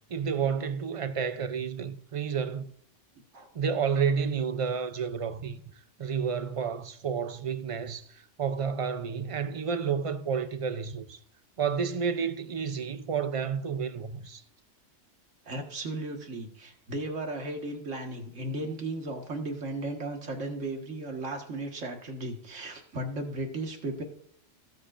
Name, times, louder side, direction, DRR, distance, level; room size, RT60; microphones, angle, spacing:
voice 1, 0.1-2.6 3.5-5.6 6.0-11.2 11.6-14.4, right 6 dB, 45° right, 0.4 m, -30 dB
voice 2, 15.5-24.0, right 2 dB, 75° right, 2.0 m, -35 dB
18.0 x 8.3 x 2.5 m
omnidirectional pair, 1.3 m